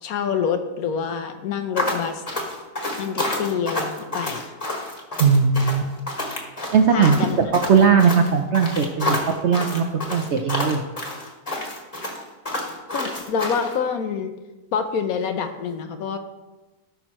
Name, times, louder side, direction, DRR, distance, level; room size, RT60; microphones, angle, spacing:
voice 1, 0.0-2.2 3.0-4.6 6.9-7.4 12.9-14.3 14.7-16.2, left 6 dB, 70° left, 7 dB, 1.2 m, -26 dB
sound 1, 1.8-13.7, left 1 dB, 25° left, 1.4 m, -29 dB
voice 2, 5.2-5.9 6.7-9.2 9.4-10.8, right 6 dB, 65° right, 4 dB, 0.7 m, -18 dB
14.0 x 6.1 x 3.1 m, 1.1 s
omnidirectional pair, 1.7 m